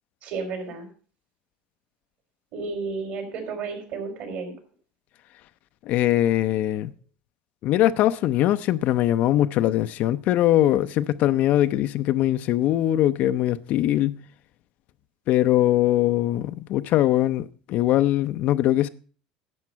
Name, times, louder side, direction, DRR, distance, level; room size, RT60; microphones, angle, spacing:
voice 1, 0.2-0.9 2.5-4.5, right 4 dB, 60° right, 4.0 m, -32 dB
voice 2, 5.8-6.9 7.6-14.2 15.3-18.9, left 13 dB, 55° left, 0.5 m, -21 dB
11.0 x 7.5 x 5.7 m
supercardioid pair, 125°, 3 cm